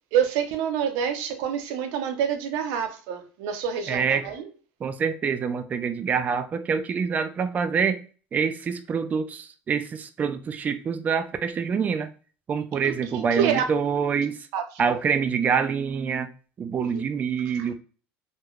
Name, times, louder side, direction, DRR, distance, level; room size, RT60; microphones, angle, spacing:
voice 1, 0.1-4.5 12.8-13.6 14.5-14.9 16.8-17.0 17.6-17.7, right 8 dB, 80° right, 0.6 m, -27 dB
voice 2, 3.9-4.2 4.8-8.0 8.3-12.1 12.5-14.4 14.8-16.3 16.6-17.7, right 6 dB, 30° right, 0.3 m, -26 dB
3.1 x 2.1 x 2.3 m
supercardioid pair, 110°, 5 cm